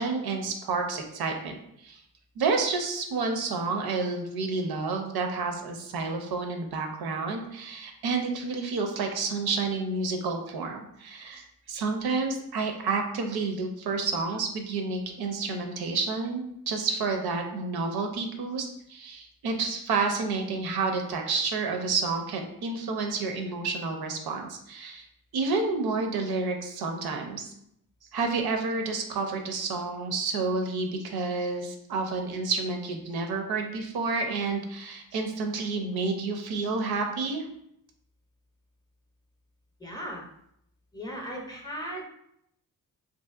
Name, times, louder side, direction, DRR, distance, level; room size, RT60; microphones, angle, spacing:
voice 1, 0.0-1.6 1.8-2.0 2.4-25.1 25.3-27.5 28.1-37.4, right 4 dB, 80° right, 4 dB, 0.6 m, -30 dB
voice 2, 39.8-40.2 40.9-42.0, equal, 10° left, 0 dB, 0.5 m, -37 dB
2.9 x 2.6 x 2.3 m, 0.74 s
wide cardioid pair, 130°, 37 cm